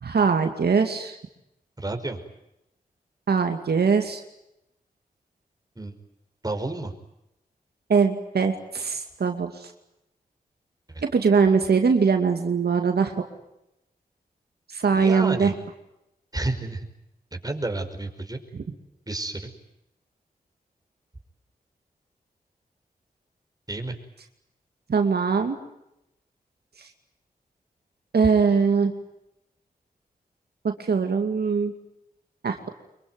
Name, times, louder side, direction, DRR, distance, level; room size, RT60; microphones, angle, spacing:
voice 1, 0.0-1.2 3.3-4.2 7.9-9.7 11.1-13.1 14.7-15.5 24.9-25.6 28.1-28.9 30.6-31.7 32.4-32.7, right 5 dB, 80° right, 5 dB, 2.4 m, -21 dB
voice 2, 1.8-2.2 5.8-6.0 6.4-6.9 10.9-11.0 14.9-15.5 16.3-16.9 17.3-18.4 19.1-19.5 23.7-24.0, right 2 dB, 25° right, 5 dB, 5.5 m, -30 dB
25.5 x 23.0 x 9.5 m, 0.86 s
cardioid pair, 55°, 16 cm